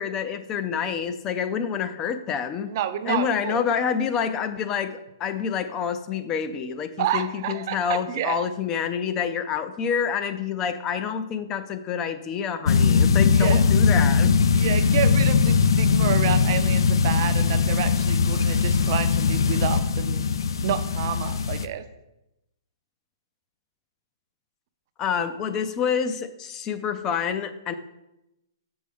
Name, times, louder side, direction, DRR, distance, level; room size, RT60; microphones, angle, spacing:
voice 1, 0.0-2.7 3.1-14.3 25.0-27.7, left 7 dB, 20° left, 10 dB, 0.5 m, -27 dB
voice 2, 2.7-3.6 7.0-8.4 13.3-13.6 14.5-20.2 20.6-21.9, right 10 dB, 45° right, 10 dB, 0.6 m, -29 dB
sound 1, 12.7-21.7, left 5 dB, 75° left, 0.4 m, -20 dB
7.3 x 6.2 x 3.6 m, 0.91 s
hypercardioid pair, 150°, 2 cm